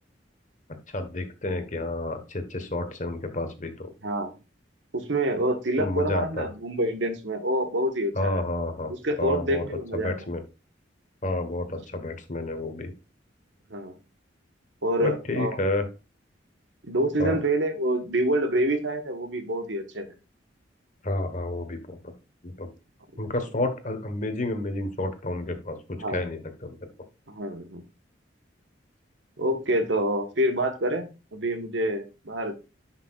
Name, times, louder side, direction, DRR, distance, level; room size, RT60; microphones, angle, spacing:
voice 1, 0.9-3.9 5.8-6.5 8.2-8.9 9.2-9.6 9.9-10.4 11.2-12.9 15.0-15.8 17.2-17.4 21.0-22.1 22.4-22.7 23.2-26.9, left 2 dB, 40° left, 7 dB, 1.3 m, -30 dB
voice 2, 4.0-4.3 4.9-8.4 8.9-10.3 13.7-13.9 14.8-15.6 16.8-20.1 26.0-26.3 27.3-27.8 29.4-32.5, right 1 dB, 75° right, 7 dB, 1.4 m, -27 dB
10.0 x 5.9 x 2.4 m, 0.29 s
head